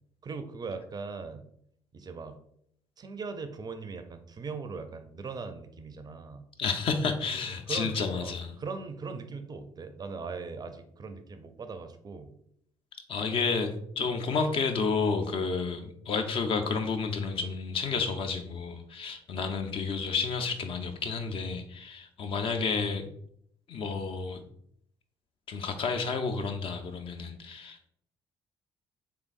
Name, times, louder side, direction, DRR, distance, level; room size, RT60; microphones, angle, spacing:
voice 1, 0.2-1.4 1.9-2.4 3.0-6.4 7.7-12.3, right 4 dB, 30° right, 8 dB, 0.4 m, -39 dB
voice 2, 6.6-8.6 13.1-23.1 23.7-24.4 25.5-27.9, left 4 dB, 45° left, 6 dB, 0.5 m, -31 dB
3.7 x 3.4 x 2.5 m, 0.69 s
figure-of-eight pair, 50°, 13 cm